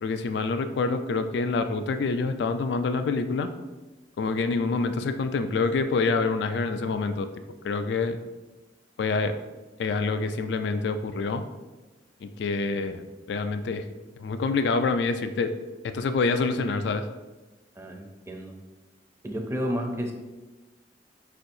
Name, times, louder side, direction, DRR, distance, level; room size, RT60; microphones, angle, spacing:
voice 1, 0.0-3.5 4.2-7.3 7.6-8.2 9.0-9.4 9.8-11.4 12.2-13.0 13.3-13.8 14.2-15.5 15.9-17.1, left 4 dB, 70° left, 9 dB, 0.3 m, -26 dB
voice 2, 17.8-18.5 19.2-20.1, equal, 15° right, 2 dB, 0.5 m, -31 dB
4.6 x 4.3 x 2.6 m, 1.1 s
head